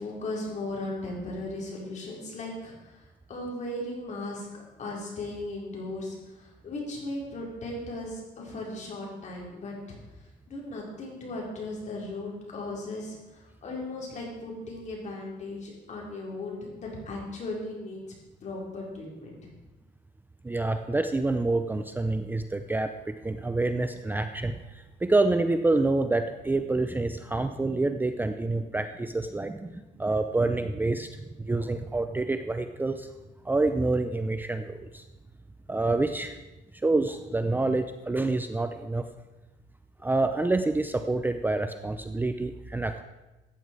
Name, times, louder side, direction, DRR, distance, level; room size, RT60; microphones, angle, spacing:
voice 1, 0.0-10.0 10.5-18.0 18.4-19.5, left 2 dB, 45° left, -2 dB, 4.6 m, -37 dB
voice 2, 20.4-33.1 33.4-35.0 35.7-36.4 36.8-39.0 40.0-43.0, right 2 dB, 10° right, 8 dB, 0.6 m, -27 dB
14.0 x 9.3 x 4.8 m, 1.1 s
cardioid pair, 110°, 17 cm